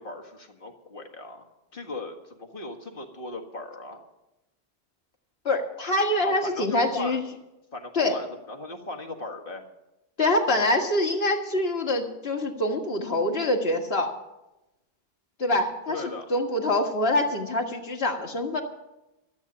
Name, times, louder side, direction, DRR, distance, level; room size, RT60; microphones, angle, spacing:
voice 1, 0.0-1.5 1.7-4.0 6.2-7.2 7.7-9.6 15.9-16.3, left 2 dB, 60° left, 3 dB, 1.9 m, -37 dB
voice 2, 5.5-7.2 7.9-8.2 10.2-14.1 15.4-16.0 16.3-18.6, left 1 dB, 75° left, 2 dB, 1.9 m, -25 dB
13.5 x 8.1 x 8.6 m, 0.95 s
omnidirectional pair, 1.0 m